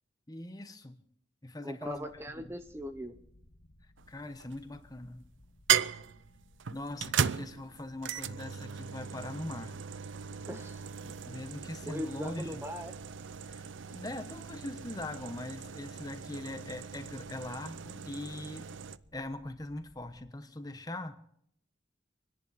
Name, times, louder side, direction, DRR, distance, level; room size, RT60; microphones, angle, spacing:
voice 1, 0.3-1.0 1.4-2.1 2.4-2.5 4.1-5.3 6.7-9.7 11.0-12.6 13.5-13.6 13.9-18.7 19.1-21.2, left 1 dB, 20° left, 9 dB, 0.9 m, -41 dB
voice 2, 1.6-3.1 10.5-10.9 11.9-12.9, equal, 15° right, 8 dB, 0.8 m, -39 dB
sound 1, 1.8-20.3, left 1 dB, 75° left, 1.5 m, -60 dB
sound 2, 4.0-4.6 5.7-19.0, right 8 dB, 80° right, 0.5 m, -37 dB
27.0 x 10.5 x 4.1 m, 0.70 s
head